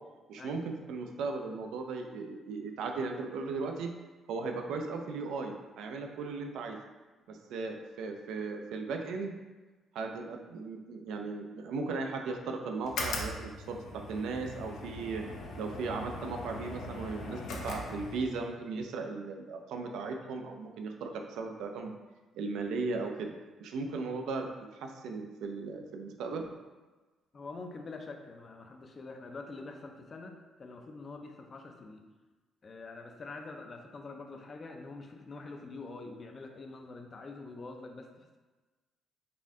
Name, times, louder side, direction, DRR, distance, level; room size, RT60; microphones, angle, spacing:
voice 1, 0.3-3.9 4.3-6.8 7.3-9.4 9.9-15.3 15.6-22.0 22.4-23.3 23.6-26.5, right 4 dB, 90° right, 4 dB, 0.4 m, -37 dB
sound 1, 12.8-18.5, left 2 dB, 75° left, 0.6 m, -40 dB
voice 2, 27.3-32.0 32.6-38.4, left 3 dB, 30° left, 3 dB, 0.4 m, -45 dB
4.1 x 2.7 x 3.5 m, 1.2 s
cardioid pair, 150°, 0 cm